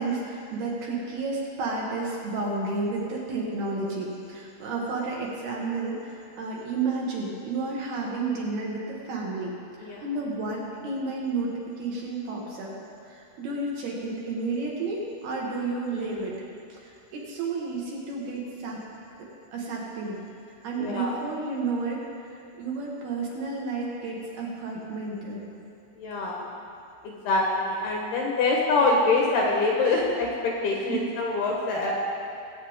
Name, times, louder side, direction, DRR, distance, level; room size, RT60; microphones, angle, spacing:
voice 1, 0.0-9.5 9.8-12.7 13.0-16.4 16.8-18.8 19.5-20.3 20.6-25.4 30.9-31.2, right 3 dB, 65° right, -3 dB, 3.0 m, -31 dB
voice 2, 15.9-16.3 20.8-21.2 26.0-26.4 27.0-31.9, left 3 dB, 70° left, -2 dB, 2.7 m, -25 dB
20.0 x 8.5 x 3.6 m, 2.6 s
omnidirectional pair, 5.5 m